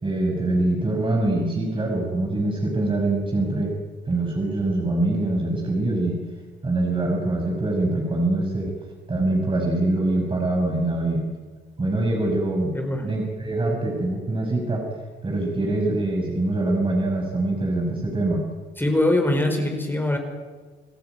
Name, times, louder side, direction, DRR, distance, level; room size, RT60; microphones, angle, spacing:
voice 1, 0.0-3.7 4.1-6.2 6.6-8.7 9.1-11.2 11.8-12.7 13.0-14.8 15.2-18.4, right 2 dB, 25° right, -1 dB, 6.1 m, -24 dB
voice 2, 12.7-13.0 18.8-20.2, left 1 dB, 10° left, 4 dB, 4.9 m, -22 dB
28.0 x 15.0 x 9.3 m, 1.4 s
cardioid pair, 90°, 20 cm